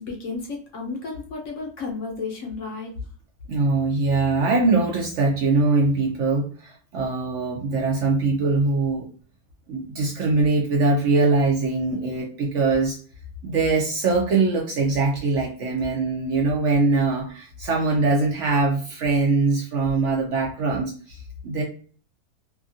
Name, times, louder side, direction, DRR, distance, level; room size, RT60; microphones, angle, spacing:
voice 1, 0.0-2.9, left 4 dB, 65° left, 1 dB, 0.9 m, -32 dB
voice 2, 3.5-9.1 9.7-13.0 13.4-21.6, right 3 dB, 65° right, -1 dB, 0.8 m, -22 dB
2.8 x 2.4 x 2.6 m, 0.43 s
omnidirectional pair, 1.6 m